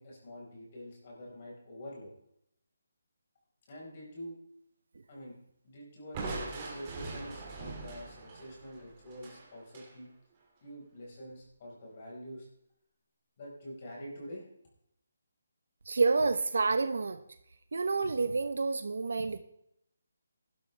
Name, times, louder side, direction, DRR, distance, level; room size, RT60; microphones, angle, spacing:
voice 1, 0.0-2.1 3.7-4.4 5.1-5.4 5.6-10.1 10.6-12.5 13.4-14.5, equal, 30° left, -3 dB, 4.8 m, -46 dB
Crushing, 6.1-9.9, right 3 dB, 20° right, 2.3 m, -42 dB
voice 2, 15.9-17.2 17.7-19.4, right 4 dB, 65° right, 10 dB, 0.9 m, -28 dB
15.5 x 12.0 x 3.4 m, 0.75 s
hypercardioid pair, 175°, 0 cm